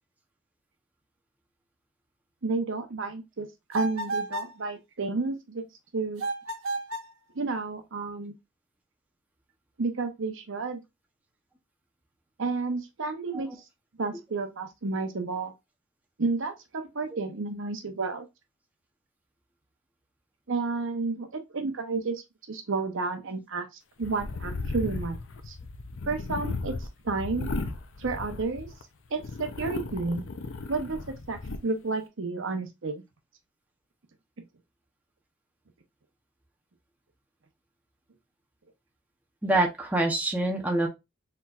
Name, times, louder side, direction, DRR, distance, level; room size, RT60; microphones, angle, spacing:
voice 1, 2.4-6.2 7.3-8.3 9.8-10.8 12.4-13.5 14.0-15.5 16.2-18.3 20.5-22.2 22.5-23.7 24.0-25.2 25.5-25.6 26.1-26.7 27.0-27.5 28.0-28.7 29.1-30.3 30.7-33.0, right 3 dB, 65° right, 0.8 m, -31 dB
sound 1, 3.7-4.6 6.2-7.1, right 2 dB, 90° right, 1.2 m, -32 dB
sound 2, 24.0-28.8 29.2-31.6, left 3 dB, 65° left, 0.6 m, -35 dB
voice 2, 39.4-40.9, right 2 dB, 10° right, 0.8 m, -26 dB
4.4 x 4.1 x 2.4 m
head